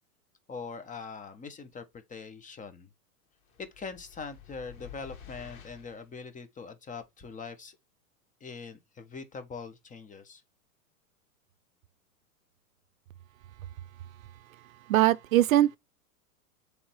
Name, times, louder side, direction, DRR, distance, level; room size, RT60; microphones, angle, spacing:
voice 1, 0.5-2.9 3.6-7.8 8.4-10.4, left 5 dB, 15° left, 1.3 m, -42 dB
sound 1, 3.5-6.1, left 9 dB, 60° left, 2.3 m, -50 dB
voice 2, 14.5-15.8, right 14 dB, 65° right, 0.7 m, -23 dB
7.0 x 3.6 x 4.6 m
hypercardioid pair, 105°, 44 cm